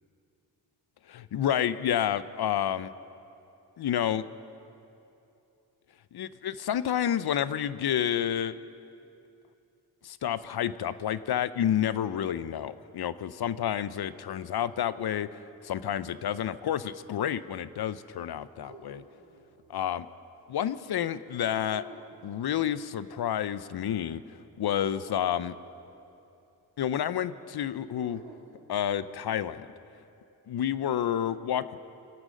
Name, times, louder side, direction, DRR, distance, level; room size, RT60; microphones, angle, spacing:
voice 1, 1.1-2.9 3.8-4.2 6.1-8.5 10.0-19.0 19.7-20.1 20.5-21.8 22.2-24.2 24.6-25.5 26.8-28.2 28.7-29.7 30.5-31.6, left 10 dB, 60° left, 15 dB, 0.6 m, -29 dB
sound 1, 14.5-16.1 18.6-19.9 21.7-22.5 24.9-26.0 28.0-29.2, right 3 dB, 90° right, 1.4 m, -52 dB
22.0 x 8.9 x 6.4 m, 2.8 s
supercardioid pair, 45°, 44 cm